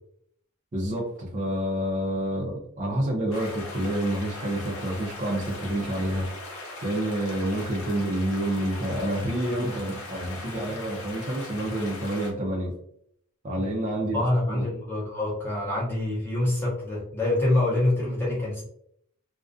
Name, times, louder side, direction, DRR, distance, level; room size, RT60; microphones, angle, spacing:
voice 1, 0.7-6.3 6.8-12.7 13.4-14.7, right 1 dB, 35° right, -2 dB, 0.5 m, -28 dB
sound 1, 3.3-12.3, left 2 dB, 75° left, 0.7 m, -40 dB
voice 2, 14.1-18.6, left 1 dB, 10° left, -6 dB, 0.6 m, -25 dB
2.4 x 2.1 x 2.4 m, 0.68 s
head